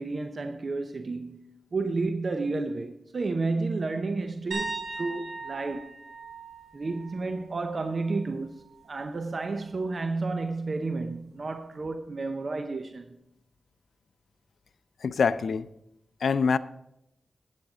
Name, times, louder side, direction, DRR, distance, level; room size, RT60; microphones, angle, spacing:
voice 1, 0.0-1.4 1.7-5.9 6.7-13.1, right 3 dB, 55° right, 0.7 m, -31 dB
sound 1, 4.5-8.3 8.6-8.9 11.8-11.9, right 3 dB, 85° right, 4.3 m, -39 dB
voice 2, 15.0-15.7 16.2-16.6, left 5 dB, 85° left, 0.4 m, -24 dB
12.0 x 9.1 x 3.9 m
cardioid pair, 70°, 0 cm